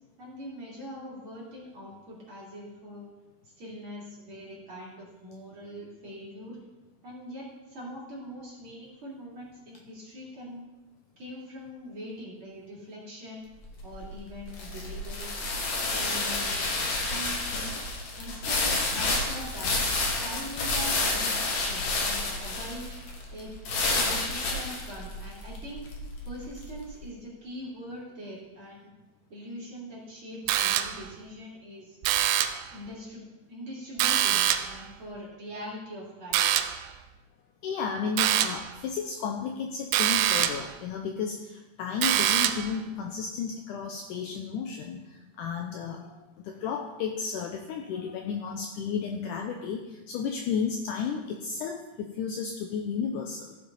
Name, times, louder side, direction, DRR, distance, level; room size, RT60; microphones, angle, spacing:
voice 1, 0.2-3.1 3.4-6.6 7.0-10.6 11.2-13.5 13.8-15.3 15.7-16.6 17.1-17.7 18.1-19.8 20.2-22.9 23.3-23.6 23.9-25.9 26.2-28.9 29.3-32.0 32.7-36.5, equal, 35° right, -6 dB, 3.2 m, -42 dB
sound 1, 13.5-26.8, left 2 dB, 55° left, 2.5 m, -30 dB
sound 2, 30.5-31.2 32.0-32.7 34.0-34.8 36.3-36.9 38.2-38.7 39.9-40.7 42.0-42.8, right 11 dB, 85° right, 2.4 m, -25 dB
voice 2, 37.6-53.6, left 6 dB, 80° left, 3 dB, 1.9 m, -33 dB
15.0 x 7.5 x 4.1 m, 1.1 s
omnidirectional pair, 4.3 m